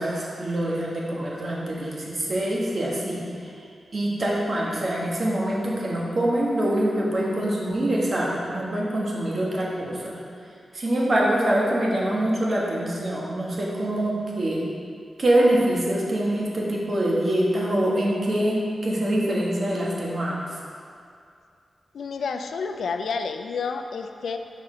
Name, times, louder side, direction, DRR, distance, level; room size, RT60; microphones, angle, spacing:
voice 1, 0.0-3.5 3.9-10.2 10.7-14.6 15.2-20.4, right 1 dB, 50° right, -4 dB, 1.3 m, -24 dB
voice 2, 21.9-24.4, left 5 dB, 90° left, 7 dB, 0.3 m, -30 dB
6.2 x 4.2 x 4.9 m, 2.3 s
wide cardioid pair, 85°, 0 cm